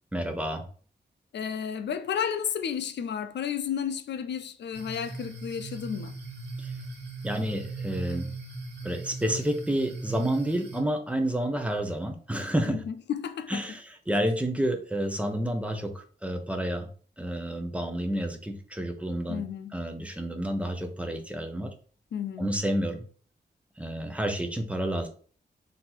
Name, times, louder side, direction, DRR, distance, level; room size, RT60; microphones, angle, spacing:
voice 1, 0.1-0.6 6.6-6.7 7.2-8.3 8.8-12.8 13.5-16.9 17.2-19.4 19.7-21.7 22.4-23.0 23.8-25.1, right 1 dB, 5° right, 0.6 m, -30 dB
voice 2, 1.3-6.2 12.7-13.6 19.3-19.8 22.1-22.5, left 8 dB, 90° left, 0.4 m, -32 dB
sound 1, 4.7-10.8, right 3 dB, 85° right, 1.1 m, -39 dB
4.4 x 2.7 x 3.9 m
wide cardioid pair, 135°, 17 cm